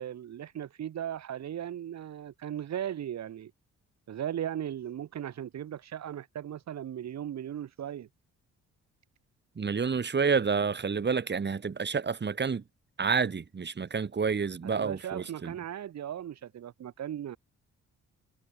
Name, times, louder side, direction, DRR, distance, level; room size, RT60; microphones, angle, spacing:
voice 1, 0.0-3.5 4.1-8.1 14.6-17.4, right 10 dB, 60° right, 2.6 m, -37 dB
voice 2, 9.6-12.6 13.0-15.5, right 5 dB, 35° right, 4.3 m, -29 dB
cardioid pair, 90°, 30 cm